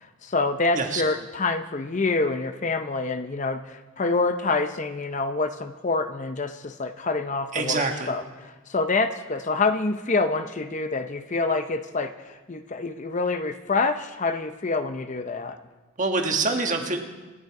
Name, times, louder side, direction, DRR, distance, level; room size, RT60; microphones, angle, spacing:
voice 1, 0.2-15.6, left 3 dB, 35° left, 9 dB, 0.6 m, -26 dB
voice 2, 7.5-8.1 16.0-17.0, right 3 dB, 35° right, 3 dB, 1.6 m, -25 dB
27.5 x 9.4 x 4.8 m, 1.3 s
head